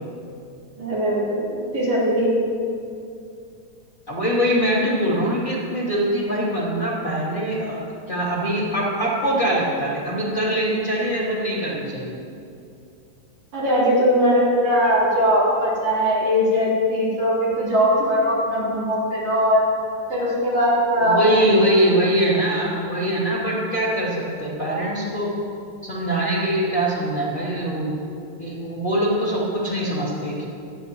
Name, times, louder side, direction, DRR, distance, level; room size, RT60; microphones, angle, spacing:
voice 1, 0.8-2.3 13.5-19.7 20.1-21.4, equal, 70° right, -9 dB, 5.3 m, -20 dB
voice 2, 4.1-7.8 8.1-12.1 21.0-25.3 25.8-30.4, right 1 dB, 25° left, -7 dB, 2.7 m, -23 dB
25.0 x 10.5 x 3.0 m, 2.5 s
omnidirectional pair, 3.4 m